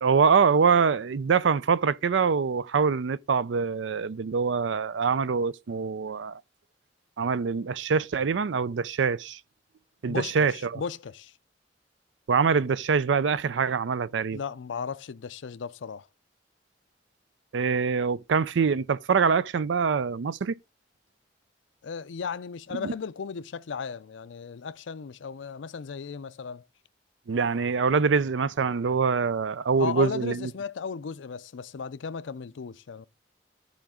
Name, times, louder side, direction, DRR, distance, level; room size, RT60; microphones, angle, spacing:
voice 1, 0.0-6.4 7.2-9.4 10.0-10.8 12.3-14.4 17.5-20.5 22.7-22.9 27.3-30.5, right 5 dB, 80° right, 0.4 m, -24 dB
voice 2, 10.1-11.3 14.3-16.1 21.8-26.6 29.8-33.1, left 6 dB, 90° left, 0.5 m, -35 dB
13.5 x 5.1 x 3.6 m
head